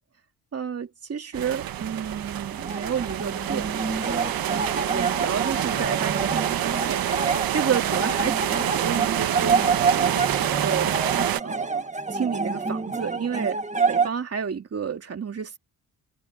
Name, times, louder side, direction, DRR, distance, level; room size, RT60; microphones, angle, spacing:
voice 1, 0.5-13.6 13.9-15.6, right 7 dB, 45° right, 2.5 m, -31 dB
sound 1, 1.3-11.4, right 12 dB, 85° right, 1.3 m, -27 dB
sound 2, 2.6-14.1, right 4 dB, 20° right, 1.8 m, -27 dB
cardioid pair, 90°, 35 cm